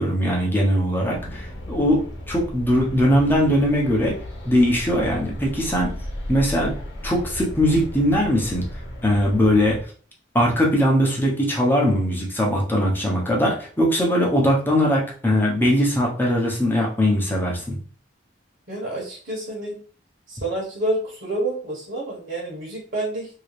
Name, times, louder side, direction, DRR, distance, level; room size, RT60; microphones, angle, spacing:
voice 1, 0.0-2.0 2.3-4.1 4.4-5.9 6.3-6.7 7.0-8.7 9.0-9.8 10.3-17.8, equal, 10° left, -2 dB, 0.9 m, -20 dB
sound 1, 1.1-9.8, left 1 dB, 70° left, 1.0 m, -35 dB
voice 2, 18.7-19.8 20.3-23.3, right 1 dB, 60° right, -5 dB, 1.2 m, -28 dB
3.1 x 2.8 x 3.2 m, 0.42 s
head